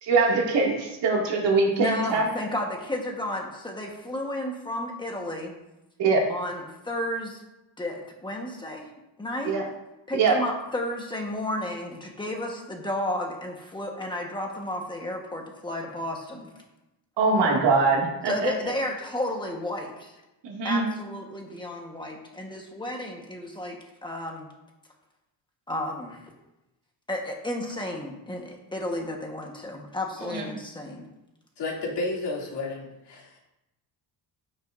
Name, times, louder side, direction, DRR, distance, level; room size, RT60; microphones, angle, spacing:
voice 1, 0.0-2.3 6.0-6.3 9.4-9.6 10.1-10.3 17.2-18.5 20.4-20.8 30.2-30.5, right 4 dB, 65° right, 2.3 m, -23 dB
voice 2, 1.8-5.6 6.3-7.4 7.8-8.9 9.2-9.6 10.1-16.5 18.2-20.2 20.6-24.5 25.7-26.2 27.1-31.1, left 1 dB, 10° left, 1.2 m, -32 dB
voice 3, 31.6-33.4, left 2 dB, 65° left, 2.7 m, -32 dB
15.0 x 6.2 x 2.6 m
cardioid pair, 175°, 44 cm